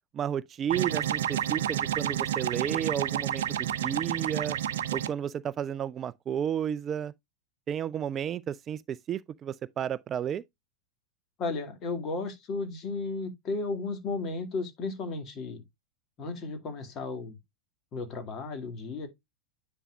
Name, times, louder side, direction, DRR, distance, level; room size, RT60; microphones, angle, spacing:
voice 1, 0.1-4.6 4.9-7.1 7.7-10.4, right 9 dB, 30° right, 0.3 m, -32 dB
sound 1, 0.7-5.1, right 10 dB, 70° right, 0.6 m, -30 dB
voice 2, 11.4-15.6 16.2-17.4 17.9-19.1, left 3 dB, 35° left, 2.2 m, -34 dB
10.0 x 4.3 x 2.4 m
figure-of-eight pair, 90°, 0 cm